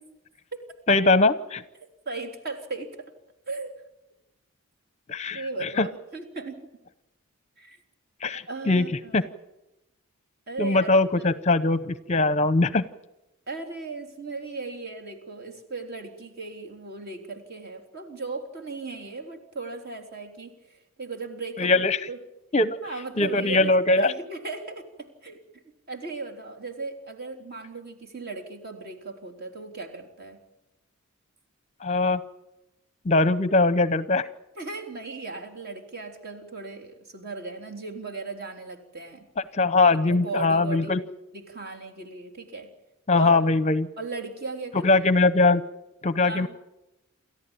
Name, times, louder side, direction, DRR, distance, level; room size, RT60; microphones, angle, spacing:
voice 1, 0.9-1.6 5.1-5.9 8.2-8.9 9.1-9.2 10.6-12.8 21.6-22.0 22.5-22.8 23.2-24.1 31.8-32.2 33.0-34.3 39.4-41.0 43.1-43.9 44.8-45.6 46.0-46.5, left 3 dB, 30° left, 15 dB, 0.7 m, -21 dB
voice 2, 1.8-3.1 3.5-3.7 5.3-6.7 7.6-7.8 8.5-9.3 10.5-11.3 13.5-22.2 22.8-25.6 25.9-30.4 34.6-39.3 39.9-41.0 41.3-42.7 43.1-43.3 44.0-44.9 46.2-46.5, right 3 dB, 45° right, 2 dB, 3.7 m, -37 dB
29.0 x 14.0 x 9.0 m, 0.95 s
head